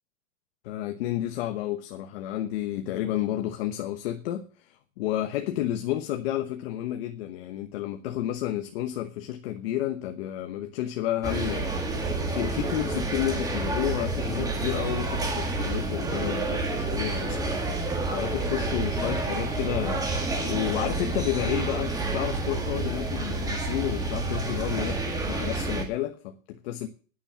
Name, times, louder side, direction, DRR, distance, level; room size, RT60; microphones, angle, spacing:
voice 1, 0.6-25.0 25.3-26.9, left 13 dB, 45° left, 1.1 m, -31 dB
sound 1, 11.2-25.8, right 2 dB, 10° right, 1.7 m, -29 dB
10.5 x 10.0 x 7.4 m
supercardioid pair, 160°, 41 cm